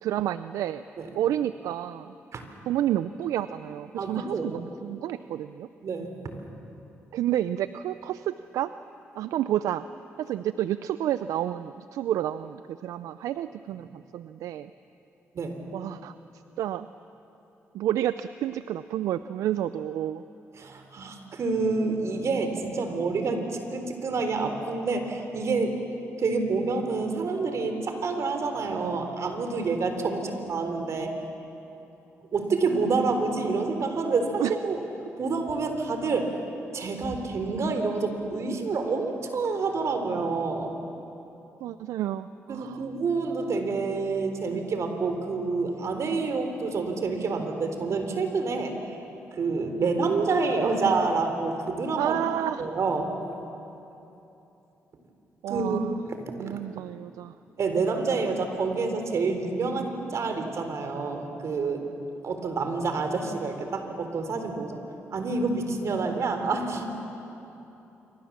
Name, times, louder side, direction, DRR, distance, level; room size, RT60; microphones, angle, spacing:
voice 1, 0.0-0.8 1.2-2.1 2.7-5.7 7.1-8.7 9.2-9.9 10.2-14.7 15.7-16.1 16.6-16.9 17.7-20.2 34.4-34.5 41.6-42.9 49.8-49.9 52.0-52.7 55.4-56.0 56.4-57.3, right 12 dB, 80° right, 13 dB, 0.5 m, -30 dB
voice 2, 4.0-4.5 5.8-6.3 15.3-15.6 20.6-25.8 26.2-31.1 32.3-34.8 35.2-36.3 36.7-40.7 42.5-49.0 49.3-52.2 52.6-53.1 55.5-55.8 56.5-56.6 57.6-61.8 62.2-64.8 65.1-66.9, right 4 dB, 60° right, 6 dB, 3.7 m, -28 dB
27.5 x 25.0 x 7.4 m, 3.0 s
supercardioid pair, 60°, 6 cm